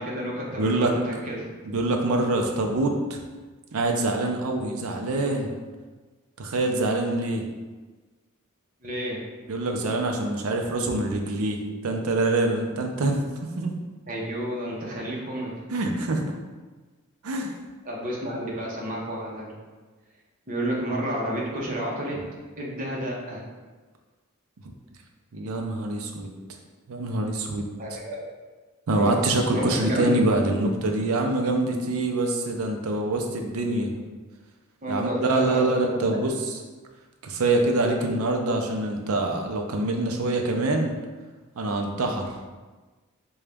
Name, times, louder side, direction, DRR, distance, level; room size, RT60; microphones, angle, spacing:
voice 1, 0.0-1.5 7.3-7.4 8.8-9.2 14.1-15.5 17.8-19.5 20.5-22.2 22.6-23.4 27.8-28.3 29.0-29.2 29.5-30.1 34.8-36.2, equal, 40° right, -4 dB, 0.8 m, -31 dB
voice 2, 0.5-0.9 1.7-3.2 3.7-5.5 6.4-7.4 9.5-13.7 15.7-16.2 17.2-17.5 24.6-24.7 25.3-26.3 26.9-27.7 28.9-33.9 34.9-36.3 37.2-40.9 41.6-42.3, right 2 dB, 85° right, 3 dB, 0.5 m, -25 dB
3.9 x 2.3 x 3.4 m, 1.3 s
head